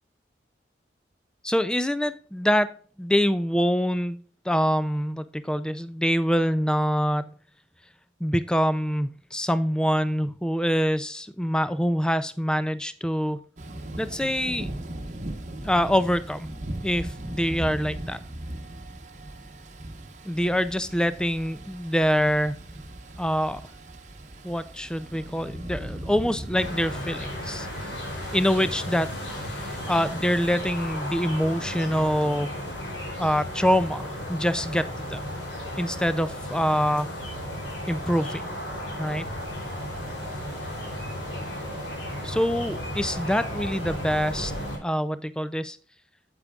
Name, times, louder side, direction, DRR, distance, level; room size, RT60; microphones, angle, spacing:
voice 1, 1.4-2.7 3.0-4.2 4.5-7.3 8.2-13.4 14.0-14.7 15.6-16.5 16.8-18.2 20.2-22.6 23.2-23.6 24.4-27.7 28.3-32.5 33.2-35.2 35.8-37.2 37.9-38.4 39.0-39.3 42.2-44.5 44.8-45.8, equal, 5° left, 13 dB, 0.4 m, -25 dB
Thunder / Rain, 13.6-28.5, right 1 dB, 40° right, 1.1 m, -38 dB
sound 1, 26.5-44.8, equal, 85° left, 3.3 m, -34 dB
8.6 x 8.3 x 2.4 m, 0.43 s
head